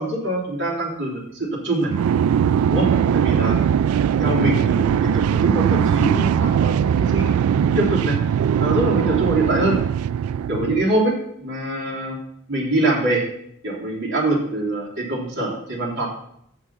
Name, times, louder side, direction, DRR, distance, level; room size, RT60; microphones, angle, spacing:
voice 1, 0.0-1.9 2.7-3.6 4.2-7.3 7.6-8.2 8.6-9.8 10.5-11.1 11.4-12.2 12.5-13.2 13.6-16.1, right 1 dB, 55° right, -2 dB, 3.0 m, -24 dB
sound 1, 1.9-10.8, right 8 dB, 80° right, 0.3 m, -20 dB
8.7 x 6.0 x 5.6 m, 0.71 s
head